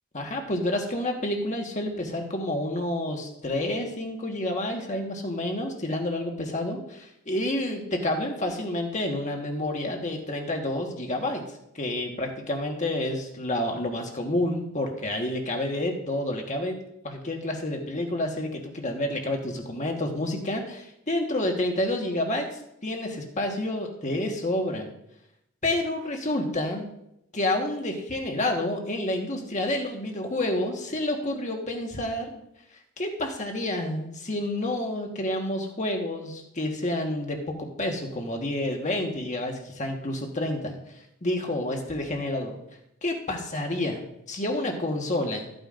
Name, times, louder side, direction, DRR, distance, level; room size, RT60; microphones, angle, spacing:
voice 1, 0.1-11.4 11.7-16.7 17.0-22.5 22.8-24.9 25.6-26.9 27.3-32.3 33.0-40.8 41.2-42.6 43.0-45.5, left 1 dB, 35° left, 3 dB, 1.4 m, -29 dB
13.5 x 9.0 x 2.5 m, 0.80 s
head